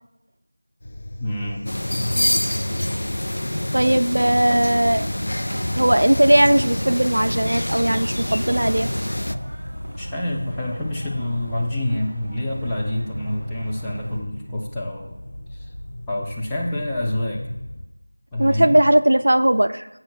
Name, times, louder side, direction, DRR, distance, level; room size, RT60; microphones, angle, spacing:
sound 1, 0.8-17.8, left 1 dB, 40° left, 1.3 m, -36 dB
voice 1, 1.2-1.6 10.0-15.2 15.5-15.7 16.1-17.4 18.3-18.8, left 1 dB, 5° left, -8 dB, 0.6 m, -27 dB
sound 2, 1.7-9.4, left 1 dB, 70° left, 0.4 m, -26 dB
voice 2, 3.7-5.1 5.7-8.9 18.4-19.9, right 1 dB, 65° right, 11 dB, 0.5 m, -18 dB
sound 3, 4.6-14.2, right 1 dB, 20° right, 3.0 m, -38 dB
16.5 x 7.8 x 2.3 m, 0.98 s
figure-of-eight pair, 175°, 0 cm